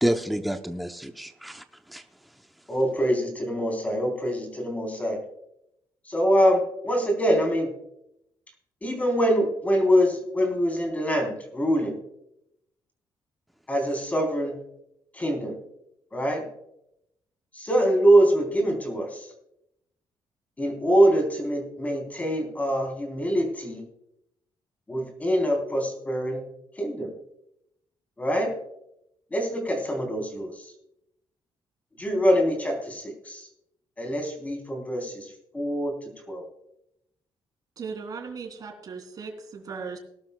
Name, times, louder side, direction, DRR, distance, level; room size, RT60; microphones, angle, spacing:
voice 1, 0.0-2.0, equal, ahead, 6 dB, 0.7 m, -29 dB
voice 2, 2.7-5.2 6.1-7.7 8.8-12.0 13.7-14.6 15.1-15.6 16.1-16.5 17.5-19.3 20.6-23.8 24.9-26.4 26.8-27.1 28.2-28.5 29.3-30.7 32.0-33.5 34.0-36.4, equal, 15° left, 2 dB, 3.6 m, -24 dB
voice 3, 37.8-40.0, right 5 dB, 45° right, 4 dB, 2.9 m, -37 dB
19.5 x 12.0 x 2.2 m, 0.80 s
cardioid pair, 150°, 9 cm